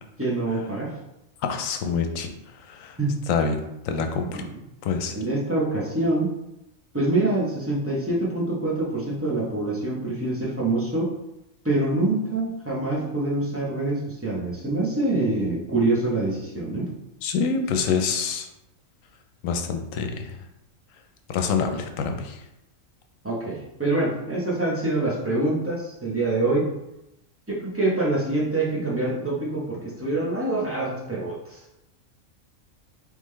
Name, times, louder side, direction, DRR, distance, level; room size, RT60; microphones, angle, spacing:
voice 1, 0.2-0.9 3.0-3.2 4.3-4.5 5.1-6.3 6.9-11.1 11.6-16.9 23.2-26.7 27.5-31.7, right 2 dB, 15° right, -5 dB, 0.7 m, -25 dB
voice 2, 1.4-2.3 2.6-3.0 3.3-3.6 3.8-4.4 4.8-5.1 17.2-18.5 19.4-20.4 21.3-22.4, left 5 dB, 90° left, 6 dB, 1.0 m, -26 dB
3.8 x 3.4 x 3.2 m, 0.87 s
omnidirectional pair, 1.3 m